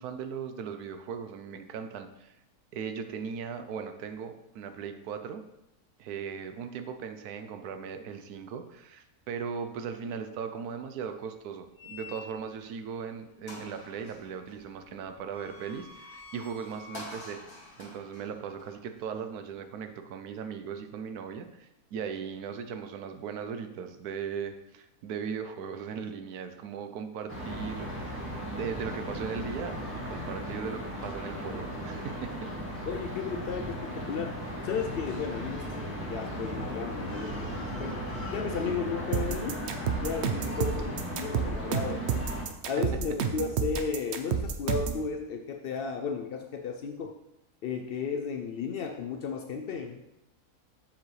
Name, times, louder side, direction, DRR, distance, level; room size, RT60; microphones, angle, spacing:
voice 1, 0.0-2.3 2.7-5.4 6.0-17.4 17.8-32.5, right 6 dB, 85° right, 8 dB, 1.2 m, -38 dB
sound 1, 11.8-12.7 13.1-13.2 13.5-19.6, left 3 dB, 40° left, 1.6 m, -48 dB
sound 2, 27.3-42.4, equal, 10° right, 2.1 m, -36 dB
voice 2, 32.9-38.0 38.3-39.7 39.9-42.3 42.6-47.2 47.6-50.0, left 6 dB, 85° left, 4 dB, 0.5 m, -34 dB
sound 3, 39.1-45.0, right 7 dB, 60° right, 0.8 m, -30 dB
7.4 x 7.1 x 3.2 m, 0.89 s
omnidirectional pair, 1.6 m